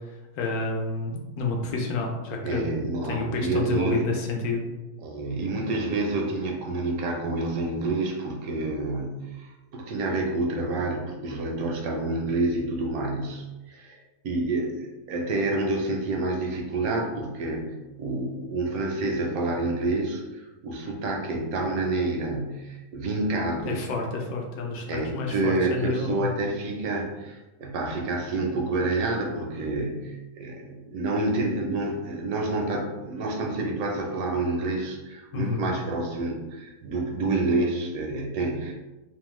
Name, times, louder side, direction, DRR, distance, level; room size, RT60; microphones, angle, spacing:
voice 1, 0.4-2.6 3.1-4.6 23.6-26.2 35.3-35.7, left 3 dB, 75° left, 1 dB, 1.0 m, -29 dB
voice 2, 2.4-4.0 5.0-14.0 14.2-23.8 24.9-38.7, right 2 dB, 75° right, 1 dB, 1.0 m, -28 dB
2.9 x 2.0 x 3.0 m, 1.1 s
omnidirectional pair, 1.6 m